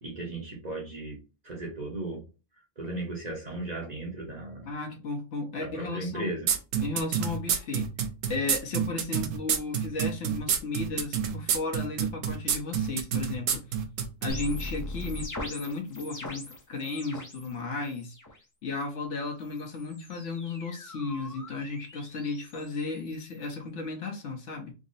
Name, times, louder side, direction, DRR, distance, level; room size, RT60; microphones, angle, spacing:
voice 1, 0.0-2.3 2.8-4.7 5.6-6.5, right 2 dB, 35° right, -2 dB, 0.9 m, -36 dB
voice 2, 4.7-6.3 6.8-7.9 8.3-13.6 14.2-18.1 18.6-24.7, left 3 dB, 65° left, 3 dB, 1.0 m, -34 dB
sound 1, 6.5-14.3, right 8 dB, 75° right, 1.0 m, -27 dB
sound 2, 14.3-17.5 17.8-18.4 19.4-23.5, left 1 dB, 25° left, 0.4 m, -41 dB
3.7 x 2.0 x 3.9 m, 0.32 s
omnidirectional pair, 1.4 m